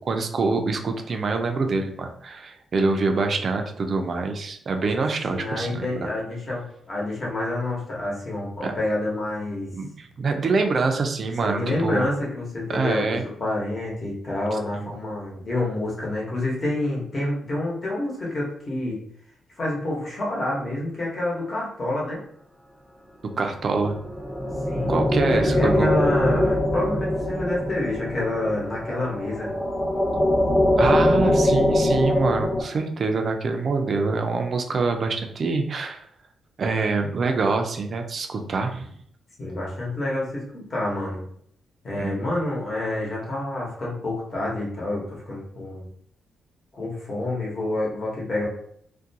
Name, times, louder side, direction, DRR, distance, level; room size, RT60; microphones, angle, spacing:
voice 1, 0.0-6.1 8.6-8.7 9.7-12.0 12.7-13.2 14.7-14.9 23.4-24.0 24.9-26.0 30.8-36.1 36.6-38.9 42.0-42.2, right 4 dB, 50° right, 5 dB, 0.4 m, -25 dB
voice 2, 5.3-9.7 11.4-19.0 19.6-22.2 24.7-25.0 25.3-29.5 39.4-41.2 41.8-45.9 46.7-48.5, left 1 dB, 40° left, -4 dB, 0.9 m, -28 dB
sound 1, 23.8-32.6, left 1 dB, 15° left, 0.5 m, -22 dB
2.4 x 2.2 x 2.7 m, 0.66 s
cardioid pair, 85°, 0 cm